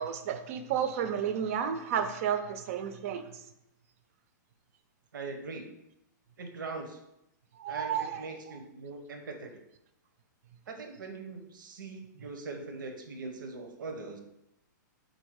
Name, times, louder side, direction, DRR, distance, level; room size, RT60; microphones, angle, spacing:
voice 1, 0.0-3.2 7.6-8.2, right 8 dB, 45° right, 8 dB, 0.5 m, -31 dB
voice 2, 5.1-5.7 6.4-7.0 7.7-9.5 10.7-14.2, right 3 dB, 90° right, 4 dB, 0.8 m, -41 dB
3.9 x 2.6 x 4.7 m, 0.84 s
hypercardioid pair, 155°, 10 cm